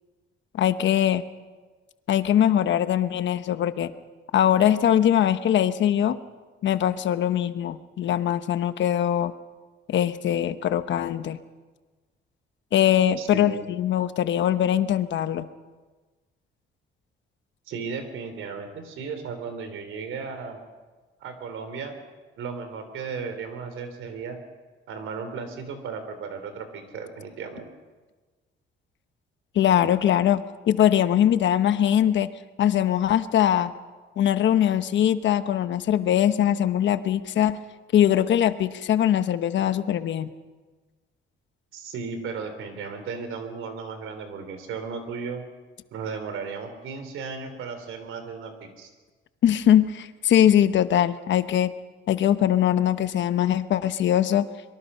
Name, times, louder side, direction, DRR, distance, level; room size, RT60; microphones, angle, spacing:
voice 1, 0.5-1.2 2.1-3.9 4.3-6.2 6.6-9.3 9.9-11.4 12.7-15.5 29.5-30.4 30.7-32.3 32.6-33.7 34.2-37.6 37.9-40.3 49.4-51.7 52.1-54.5, left 10 dB, 65° left, 12 dB, 1.0 m, -21 dB
voice 2, 13.2-13.6 17.7-20.6 21.2-21.9 22.4-24.4 24.9-27.7 41.7-45.4 45.9-48.9, right 5 dB, 80° right, 8 dB, 3.5 m, -35 dB
24.0 x 23.0 x 5.6 m, 1.3 s
cardioid pair, 130°, 21 cm